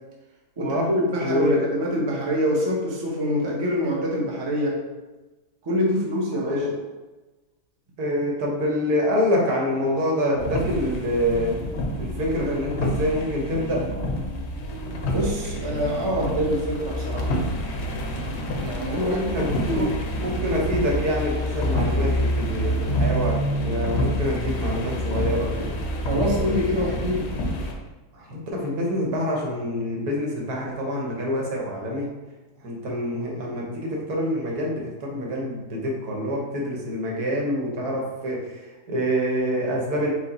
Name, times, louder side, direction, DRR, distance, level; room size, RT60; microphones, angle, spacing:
voice 1, 0.6-4.8 5.6-6.7 15.1-17.4 18.6-19.3 19.5-20.0 26.1-27.4, equal, 30° right, -3 dB, 0.4 m, -25 dB
voice 2, 1.2-1.6 6.5-6.7 8.0-11.5 12.0-13.8 19.0-19.9 20.2-25.7 28.1-32.1 32.6-38.4 38.9-40.1, equal, 80° right, -2 dB, 1.5 m, -26 dB
sound 1, 10.4-27.7, equal, 60° left, 0.7 m, -27 dB
4.8 x 2.1 x 4.1 m, 1.2 s
omnidirectional pair, 1.6 m